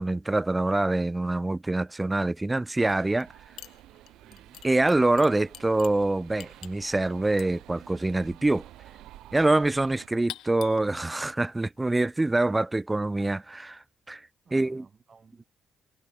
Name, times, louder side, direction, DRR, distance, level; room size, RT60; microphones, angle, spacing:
voice 1, 0.0-3.3 4.6-8.7 9.3-14.2 14.5-14.8, right 2 dB, 15° right, 0.5 m, -25 dB
sound 1, 2.8-10.1, right 15 dB, 90° right, 2.7 m, -50 dB
sound 2, 3.1-3.3 3.6-12.5, left 13 dB, 85° left, 2.8 m, -48 dB
voice 2, 4.2-4.6 14.4-15.4, right 5 dB, 40° right, 6.0 m, -56 dB
cardioid pair, 90°, 0 cm